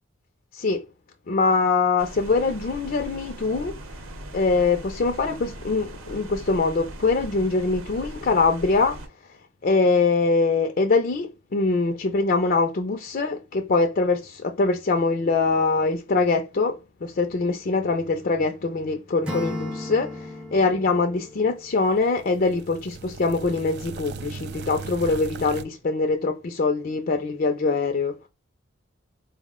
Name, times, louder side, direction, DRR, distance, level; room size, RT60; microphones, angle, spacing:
voice 1, 0.5-0.8 1.3-3.8 4.3-9.0 9.6-28.2, left 3 dB, 45° left, 0.4 m, -23 dB
sound 1, 2.0-9.1, right 1 dB, 90° right, 0.8 m, -39 dB
Acoustic guitar / Strum, 19.2-22.3, left 1 dB, 5° right, 0.5 m, -36 dB
sound 2, 21.8-25.6, right 4 dB, 55° right, 0.3 m, -38 dB
4.2 x 2.1 x 3.6 m
head